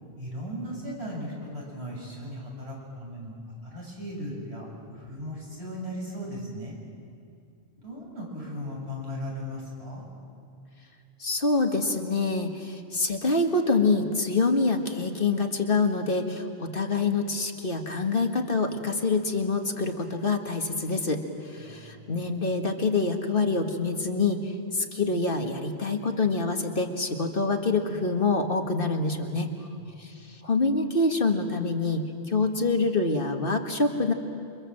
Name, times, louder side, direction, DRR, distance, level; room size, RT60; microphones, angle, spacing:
voice 1, 0.2-6.8 7.8-10.1 21.6-22.2 29.8-29.9, equal, 75° right, -3 dB, 7.5 m, -37 dB
voice 2, 11.2-29.5 30.0-34.1, left 3 dB, 55° left, 4 dB, 2.0 m, -26 dB
29.0 x 24.5 x 7.7 m, 2.5 s
omnidirectional pair, 1.1 m